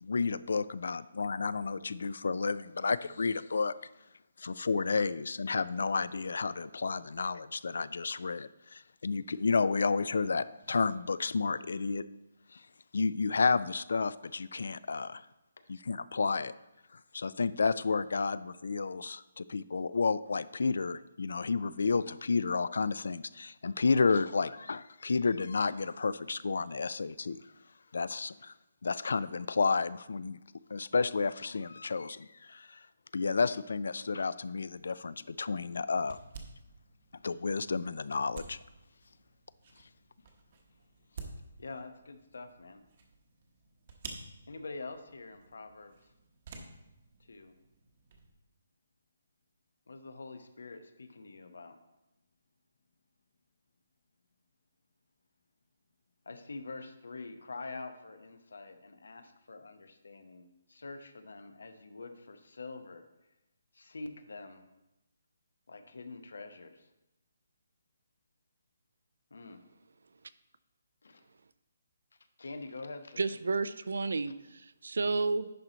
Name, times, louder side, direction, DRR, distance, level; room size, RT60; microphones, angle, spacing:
voice 1, 0.0-3.7 4.4-12.1 12.5-12.6 12.9-15.2 15.7-16.5 16.9-27.4 27.9-28.5 28.8-30.4 30.7-32.8 33.1-36.2 37.2-38.6, left 4 dB, 70° left, 17 dB, 0.3 m, -31 dB
sound 1, 34.8-48.3, right 4 dB, 30° right, 0.8 m, -52 dB
voice 2, 41.6-42.8 44.5-46.1 47.2-47.5 49.9-51.8 56.3-63.0 63.7-64.7 65.7-66.9 69.3-69.6 71.0-71.2 72.4-73.2, left 3 dB, 85° left, 9 dB, 0.8 m, -45 dB
voice 3, 73.2-75.5, right 3 dB, 75° right, 15 dB, 0.4 m, -31 dB
10.5 x 4.4 x 3.9 m, 0.94 s
hypercardioid pair, 175°, 0 cm